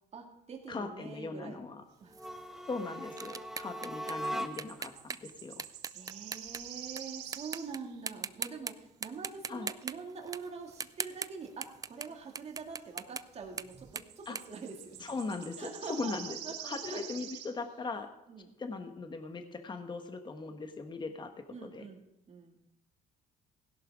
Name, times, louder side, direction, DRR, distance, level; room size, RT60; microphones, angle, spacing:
voice 1, 0.1-1.7 2.0-2.2 5.9-15.1 15.6-16.1 16.4-17.0 18.3-18.5 21.5-22.6, right 5 dB, 40° right, 2 dB, 2.5 m, -45 dB
voice 2, 0.7-1.8 2.7-5.6 9.5-9.7 14.3-14.4 15.0-16.4 16.6-18.1 18.6-21.9, left 3 dB, 25° left, 7 dB, 1.3 m, -39 dB
sound 1, 2.1-4.9, equal, ahead, 0.9 m, -40 dB
sound 2, 2.1-7.0 7.3-7.8 8.1-8.7 9.0-15.4, right 5 dB, 20° right, 0.4 m, -41 dB
sound 3, 4.1-8.0 13.7-17.6, right 10 dB, 85° right, 1.6 m, -46 dB
16.5 x 11.0 x 3.7 m, 0.90 s
cardioid pair, 110°, 17 cm